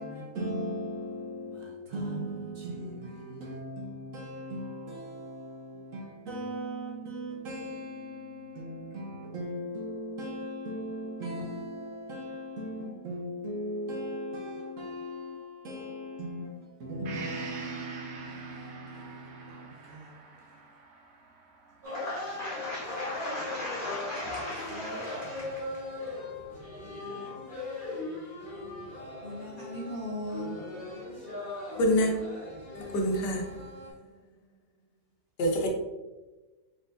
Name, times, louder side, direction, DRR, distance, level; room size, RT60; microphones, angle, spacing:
voice 1, 0.0-20.7 23.3-23.7 24.4-25.6 26.1-26.5 26.8-27.4, equal, 60° right, 1.0 m, -38 dB
Gong, 17.0-24.7 25.1-25.2, right 3 dB, 75° right, 1.3 m, -47 dB
voice 2, 21.8-25.4 29.2-30.7, left 1 dB, 55° left, 0.5 m, -37 dB
sound 1, 21.8-33.9, left 2 dB, 35° right, 1.7 m, -39 dB
voice 3, 31.8-32.1 32.7-33.8 35.4-35.7, equal, 75° left, 1.4 m, -27 dB
4.4 x 4.1 x 2.6 m
omnidirectional pair, 1.8 m